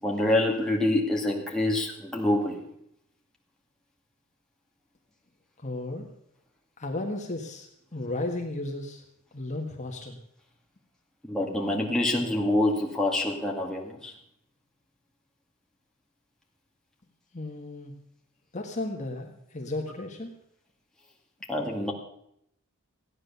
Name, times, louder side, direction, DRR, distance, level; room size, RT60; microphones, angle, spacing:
voice 1, 0.0-2.6 11.2-14.1 21.5-21.9, left 1 dB, 5° left, -2 dB, 2.2 m, -26 dB
voice 2, 5.6-6.1 6.8-9.0 9.3-10.2 17.3-17.9 18.5-20.3, left 2 dB, 35° left, 2 dB, 1.5 m, -34 dB
15.5 x 9.9 x 6.8 m, 0.74 s
head